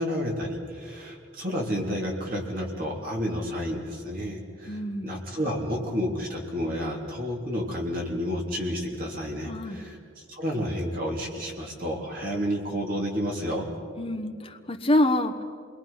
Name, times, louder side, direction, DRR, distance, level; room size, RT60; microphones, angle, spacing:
voice 1, 0.0-13.7, equal, 45° right, -1 dB, 3.5 m, -30 dB
voice 2, 4.7-5.2 9.4-9.8 14.0-15.4, left 1 dB, 25° left, 6 dB, 1.2 m, -26 dB
27.5 x 22.0 x 5.9 m, 2.2 s
head